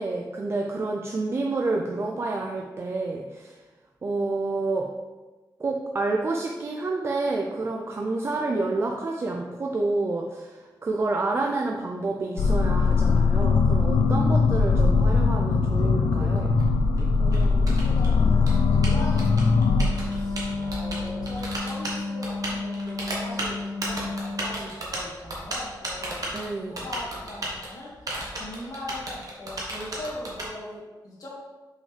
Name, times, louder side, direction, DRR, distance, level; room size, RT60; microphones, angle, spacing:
voice 1, 0.0-3.6 4.0-4.9 5.6-16.6 26.3-26.7, right 3 dB, 35° right, 0 dB, 0.4 m, -29 dB
sound 1, 12.4-21.5, left 4 dB, 85° left, 0.4 m, -21 dB
Typing, 15.6-30.5, right 1 dB, 50° right, 1.3 m, -35 dB
voice 2, 17.2-31.3, left 1 dB, 55° left, -5 dB, 1.9 m, -40 dB
Wind instrument woodwind instrument, 18.2-24.7, left 3 dB, 20° left, 1.6 m, -32 dB
5.6 x 5.6 x 3.3 m, 1.2 s
wide cardioid pair, 180°, 7 cm